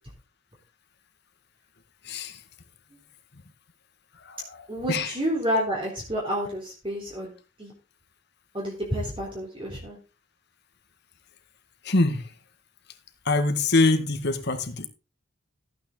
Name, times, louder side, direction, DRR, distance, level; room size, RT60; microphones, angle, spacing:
voice 1, 2.0-2.4 4.3-4.4 4.9-5.1 11.8-12.2 13.3-14.9, left 2 dB, 55° left, 8 dB, 1.9 m, -24 dB
voice 2, 4.7-7.3 7.6-7.7 8.5-10.0, equal, 25° right, -2 dB, 3.9 m, -29 dB
14.5 x 9.4 x 4.0 m, 0.33 s
head